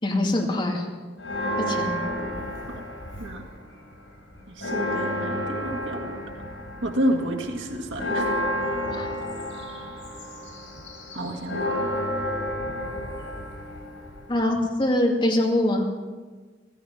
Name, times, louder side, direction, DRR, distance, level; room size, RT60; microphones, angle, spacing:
voice 1, 0.0-0.9 1.7-2.0 8.9-9.1 14.3-15.9, left 1 dB, 25° left, -1 dB, 2.3 m, -23 dB
Church bell, 1.2-3.6 3.9-4.0 4.4-14.4, equal, 90° left, 4.8 m, -31 dB
voice 2, 4.5-6.3 6.8-8.5 11.1-11.7, equal, 85° right, 2 dB, 1.8 m, -30 dB
15.5 x 14.5 x 5.6 m, 1.4 s
head